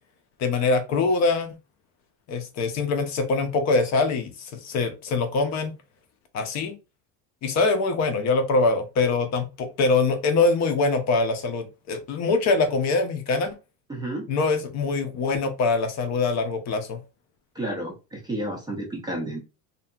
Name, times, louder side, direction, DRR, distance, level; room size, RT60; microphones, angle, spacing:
voice 1, 0.4-1.5 2.3-5.7 6.3-6.8 7.4-13.6 14.3-17.0, left 3 dB, 40° left, 0.5 m, -23 dB
voice 2, 13.9-14.3 17.6-19.4, right 1 dB, 10° right, 0.4 m, -31 dB
2.7 x 2.6 x 2.2 m
cardioid pair, 155°, 42 cm